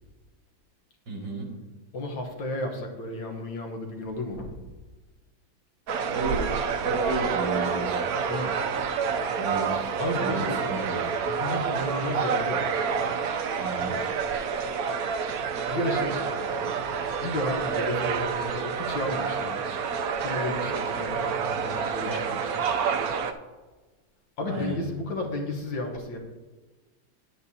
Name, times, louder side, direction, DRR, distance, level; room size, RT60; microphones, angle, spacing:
voice 1, 1.1-1.5 6.1-7.9 9.3-9.7 10.2-11.0 13.6-13.9 24.5-24.8, right 1 dB, 65° right, -2 dB, 3.0 m, -32 dB
voice 2, 1.9-4.6 8.3-8.6 10.0-10.9 11.3-12.7 13.0-13.4 15.7-16.8 17.2-19.8 20.2-22.6 24.4-26.2, left 1 dB, 70° left, 2 dB, 1.7 m, -33 dB
sound 1, 5.9-23.3, right 6 dB, 80° right, 0.8 m, -28 dB
10.5 x 8.4 x 2.7 m, 1.3 s
omnidirectional pair, 2.1 m